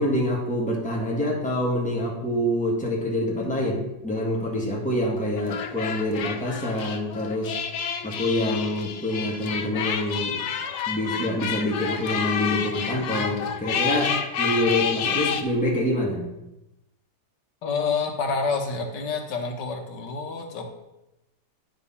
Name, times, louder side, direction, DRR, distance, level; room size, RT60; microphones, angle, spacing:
voice 1, 0.0-7.5 8.0-10.4 10.9-16.3, left 1 dB, 5° left, -2 dB, 1.5 m, -26 dB
sound 1, 5.4-15.4, left 7 dB, 65° left, 0.7 m, -29 dB
voice 2, 17.6-20.6, left 4 dB, 90° left, 4 dB, 1.7 m, -28 dB
9.6 x 4.1 x 5.6 m, 0.93 s
omnidirectional pair, 1.8 m